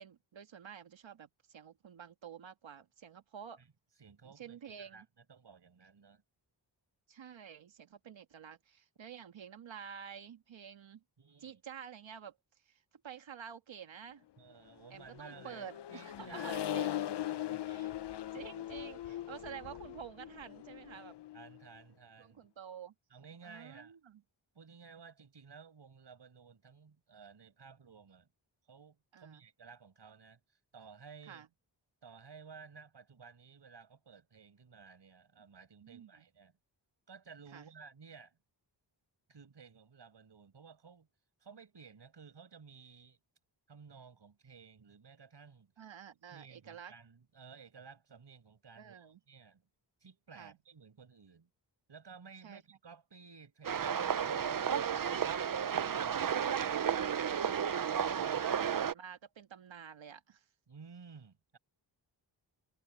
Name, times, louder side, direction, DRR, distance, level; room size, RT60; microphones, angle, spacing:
voice 1, 0.0-3.6 4.2-5.1 7.1-11.0 11.4-12.4 12.6-14.2 14.9-17.0 17.6-17.9 18.3-21.1 22.2-22.9 23.4-24.2 29.1-29.4 31.3-31.5 35.8-36.2 37.5-37.7 45.8-46.9 48.8-49.2 50.3-50.6 52.4-52.6 56.8-60.4, right 8 dB, 80° right, 1.7 m, -50 dB
voice 2, 4.0-6.2 11.2-11.6 14.4-16.6 17.3-17.8 18.3-18.5 21.3-22.4 23.1-24.0 24.5-28.3 28.7-31.5 32.0-36.6 37.1-38.4 39.3-41.1 41.4-43.2 43.7-45.7 46.3-49.7 50.0-51.5 51.9-56.6 58.2-58.5 60.7-61.6, right 5 dB, 65° right, 5.8 m, -55 dB
Accelerating revving vroom, 14.9-21.6, left 12 dB, 65° left, 0.6 m, -40 dB
sound 1, 53.6-58.9, right 8 dB, 45° right, 0.7 m, -32 dB
wide cardioid pair, 75°, 45 cm